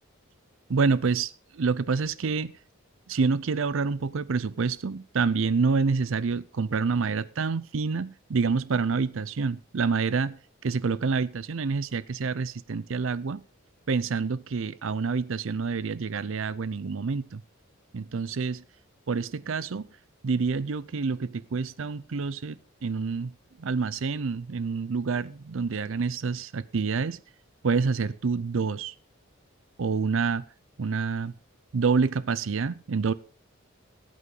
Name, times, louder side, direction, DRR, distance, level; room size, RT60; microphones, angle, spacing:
voice 1, 0.7-2.5 3.1-13.4 13.9-17.4 17.9-18.6 19.1-19.8 20.2-23.3 23.6-27.2 27.6-28.9 29.8-30.4 30.8-31.3 31.7-33.1, right 4 dB, 65° right, 0.5 m, -27 dB
18.5 x 8.4 x 3.9 m
head